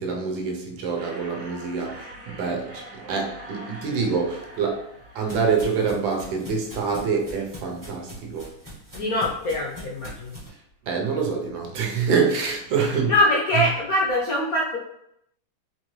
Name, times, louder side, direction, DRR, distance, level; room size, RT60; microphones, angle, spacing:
voice 1, 0.0-4.8 5.1-8.5 10.9-13.1, right 5 dB, 75° right, 1 dB, 1.4 m, -26 dB
sound 1, 1.0-6.5, right 1 dB, 40° right, 0.9 m, -44 dB
sound 2, 4.4-10.5, equal, 20° right, 0.5 m, -42 dB
voice 2, 8.9-10.3 13.1-14.8, left 1 dB, 70° left, -4 dB, 0.8 m, -23 dB
4.0 x 2.7 x 3.0 m, 0.76 s
omnidirectional pair, 2.2 m